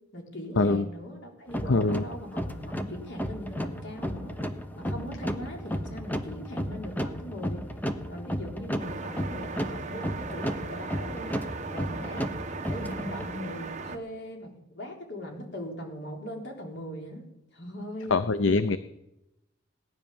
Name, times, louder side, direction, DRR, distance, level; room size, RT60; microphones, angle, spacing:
voice 1, 0.1-4.4 4.7-7.7 8.1-11.3 11.7-12.3 12.7-17.3 17.5-18.2, equal, 65° left, 1 dB, 3.9 m, -40 dB
sound 1, 1.5-13.3, equal, 10° left, 1.1 m, -34 dB
voice 2, 1.7-2.0 18.1-18.8, left 3 dB, 80° left, 12 dB, 0.7 m, -23 dB
sound 2, 8.8-14.0, right 4 dB, 40° right, 1.2 m, -38 dB
18.0 x 10.5 x 7.2 m, 0.90 s
head